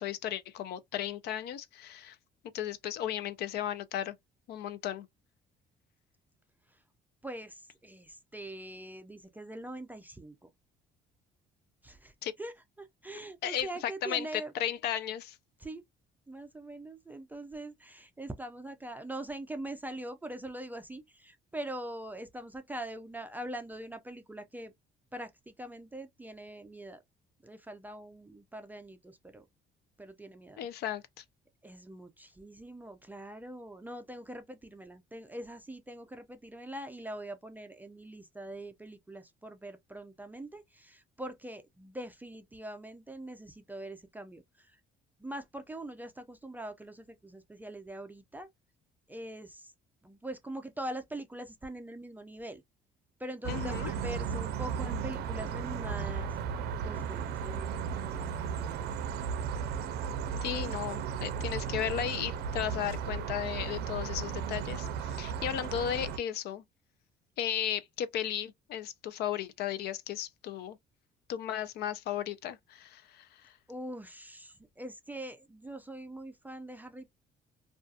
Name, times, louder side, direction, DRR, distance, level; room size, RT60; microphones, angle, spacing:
voice 1, 0.0-2.2 2.5-4.1 4.5-5.1 12.2-12.3 13.4-15.4 30.6-31.2 53.5-53.9 60.4-66.6 67.4-70.8 71.3-73.5, left 10 dB, 70° left, 0.5 m, -35 dB
voice 2, 7.2-10.5 11.8-12.1 12.4-14.5 15.6-15.8 16.3-24.7 25.1-27.0 27.4-29.4 30.0-30.7 31.6-44.8 45.2-48.5 49.1-49.7 50.0-52.6 53.2-56.3 56.8-58.9 73.7-77.1, right 1 dB, 10° right, 0.3 m, -43 dB
sound 1, 53.4-66.2, right 7 dB, 75° right, 0.5 m, -35 dB
2.6 x 2.4 x 2.3 m
cardioid pair, 110°, 17 cm